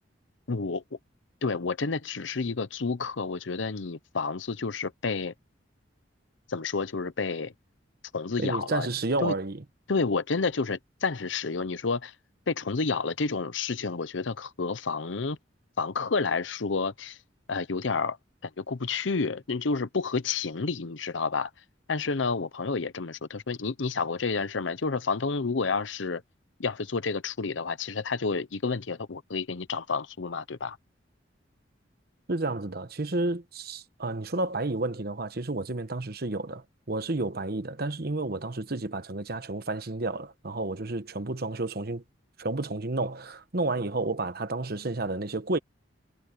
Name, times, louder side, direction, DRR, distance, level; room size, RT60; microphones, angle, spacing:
voice 1, 0.5-0.8 1.4-5.3 6.5-7.5 8.1-8.9 9.2-9.3 9.9-12.1 12.5-15.4 15.8-17.2 17.5-18.2 18.6-21.5 21.9-26.2 26.6-30.8, left 4 dB, 85° left, 0.8 m, -30 dB
voice 2, 8.4-9.6 32.3-42.0 42.4-45.6, right 2 dB, 55° right, 1.1 m, -31 dB
head